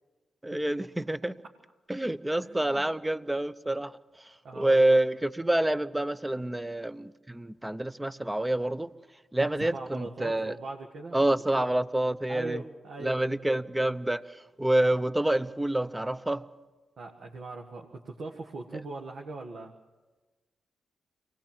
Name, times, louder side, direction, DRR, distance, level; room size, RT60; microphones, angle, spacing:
voice 1, 0.4-1.4 1.9-3.9 4.6-8.9 9.3-10.6 11.1-12.6 13.0-14.2 14.6-16.5, right 1 dB, 15° right, 14 dB, 0.8 m, -27 dB
voice 2, 2.4-2.9 4.4-5.0 9.6-11.2 11.5-11.7 12.3-13.2 17.0-19.7, right 3 dB, 65° right, 1 dB, 1.5 m, -40 dB
23.5 x 18.5 x 7.4 m, 1.2 s
supercardioid pair, 55°, 0 cm